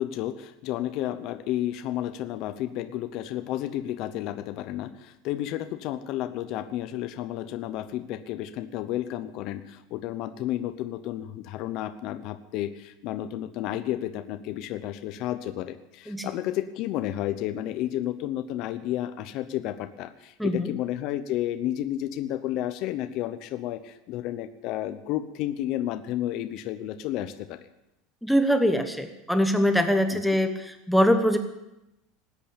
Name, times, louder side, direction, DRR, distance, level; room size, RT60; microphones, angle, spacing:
voice 1, 0.0-27.6, left 13 dB, 45° left, 9 dB, 0.8 m, -31 dB
voice 2, 20.4-20.7 28.2-31.4, equal, ahead, 6 dB, 1.0 m, -23 dB
19.5 x 8.4 x 8.6 m, 0.91 s
supercardioid pair, 160°, 0 cm